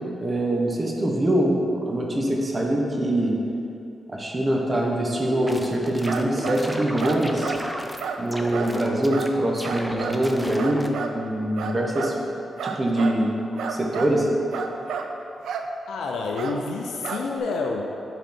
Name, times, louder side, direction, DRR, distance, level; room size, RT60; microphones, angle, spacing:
voice 1, 0.2-3.4 4.1-7.5 8.2-10.8 11.1-12.2 12.6-13.4 13.7-14.3, right 1 dB, 35° right, -1 dB, 1.1 m, -24 dB
sound 1, 5.2-8.0 8.3-9.3 9.6-10.9, equal, 5° right, 0.6 m, -34 dB
sound 2, 6.0-6.7 7.0-7.6 8.0-8.2 8.5-8.7 9.1-9.3 9.6-10.2 10.6-11.2 11.6-12.2 12.6-13.2 13.6-14.1 14.5-15.1 15.4-15.7 16.4-16.6 17.0-17.4, right 6 dB, 85° right, 0.4 m, -31 dB
voice 2, 15.9-18.0, left 3 dB, 85° left, 1 dB, 0.4 m, -28 dB
8.2 x 4.0 x 4.2 m, 2.7 s
cardioid pair, 60°, 0 cm